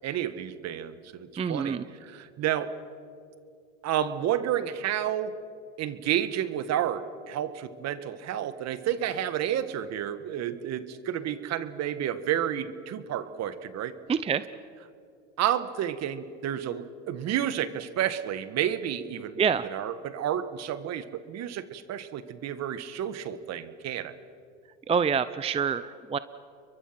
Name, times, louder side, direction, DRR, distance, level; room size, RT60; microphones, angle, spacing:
voice 1, 0.0-2.7 3.8-5.3 5.8-13.9 15.4-24.1, right 10 dB, 50° right, 13 dB, 1.7 m, -31 dB
voice 2, 1.4-1.8 14.1-14.4 19.4-19.7 24.9-26.2, right 6 dB, 15° right, 14 dB, 0.6 m, -26 dB
30.0 x 23.0 x 5.9 m, 2.4 s
supercardioid pair, 100°, 35 cm